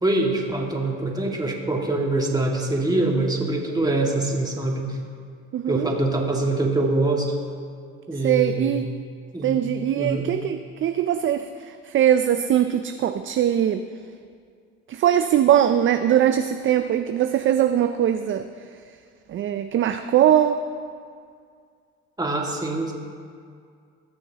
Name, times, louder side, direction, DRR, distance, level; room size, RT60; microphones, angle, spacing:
voice 1, 0.0-5.0 5.7-7.4 8.1-8.9 9.3-9.6 10.0-10.3 22.2-22.9, right 2 dB, 10° right, -1 dB, 1.9 m, -24 dB
voice 2, 5.5-5.9 8.2-9.0 9.4-13.9 14.9-18.5 19.3-20.6, right 10 dB, 40° right, 9 dB, 0.4 m, -21 dB
19.5 x 6.9 x 2.9 m, 2.2 s
supercardioid pair, 80°, 32 cm